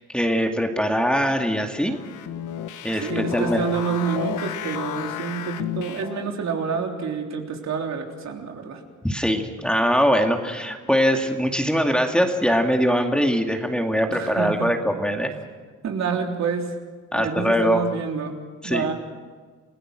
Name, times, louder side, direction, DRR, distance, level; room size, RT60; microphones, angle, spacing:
voice 1, 0.1-2.0 2.8-3.6 9.0-15.3 17.1-17.8 18.6-18.9, equal, 5° left, 3 dB, 2.2 m, -22 dB
sound 1, 1.9-6.4, left 11 dB, 85° left, 1.2 m, -32 dB
voice 2, 3.0-8.8 14.1-14.7 15.8-16.7 17.1-18.4 18.6-18.9, right 6 dB, 65° right, 2 dB, 3.6 m, -28 dB
28.5 x 17.0 x 6.3 m, 1.5 s
cardioid pair, 90°, 30 cm